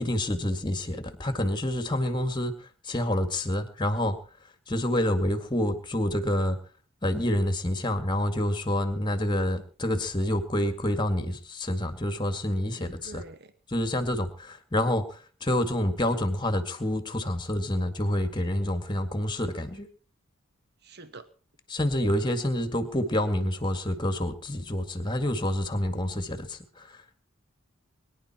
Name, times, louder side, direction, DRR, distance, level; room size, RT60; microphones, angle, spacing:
voice 1, 0.0-2.5 2.8-4.2 4.7-6.6 7.0-13.2 13.7-19.9 21.7-27.0, left 1 dB, 20° left, 9 dB, 2.0 m, -28 dB
voice 2, 12.6-13.5 20.8-21.2, right 2 dB, 50° right, 11 dB, 1.1 m, -47 dB
24.0 x 11.0 x 4.4 m, 0.39 s
head